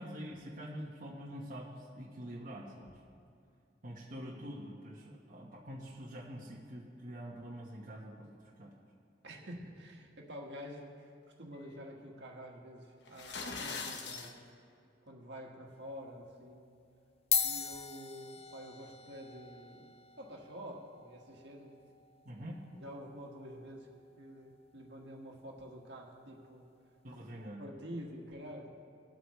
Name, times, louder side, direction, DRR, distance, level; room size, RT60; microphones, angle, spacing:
voice 1, 0.0-2.9 3.8-8.3 8.6-8.7 22.2-22.6 27.0-27.7, equal, 45° right, -4 dB, 1.3 m, -45 dB
voice 2, 9.2-11.1 11.4-14.4 15.1-16.6 17.4-21.7 22.7-23.9 24.2-26.7 27.5-28.7, equal, 70° right, -1 dB, 1.7 m, -48 dB
sound 1, 13.1-14.3, left 4 dB, 70° left, 1.0 m, -41 dB
sound 2, 15.7-16.0 16.8-16.9 17.2-25.8, left 7 dB, 35° left, 0.5 m, -41 dB
20.0 x 7.9 x 3.2 m, 2.5 s
head